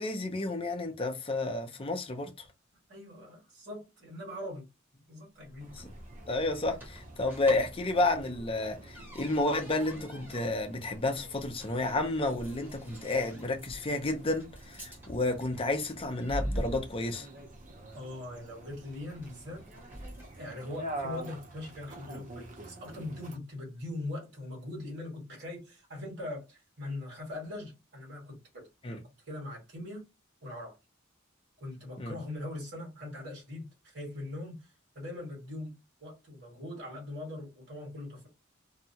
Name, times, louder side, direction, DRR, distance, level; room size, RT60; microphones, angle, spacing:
voice 1, 0.0-2.3 5.8-5.9 6.3-17.3 28.8-29.0 32.0-32.1, left 2 dB, 25° left, 0.6 m, -31 dB
voice 2, 2.9-4.6 5.1-5.7 17.9-19.6 20.4-30.1 30.4-30.8 31.6-35.7 36.0-38.3, left 1 dB, 60° right, 1.5 m, -41 dB
sound 1, 5.4-20.5, equal, 10° right, 0.9 m, -44 dB
sound 2, 5.6-23.4, right 1 dB, 40° right, 0.7 m, -47 dB
2.7 x 2.3 x 2.7 m
head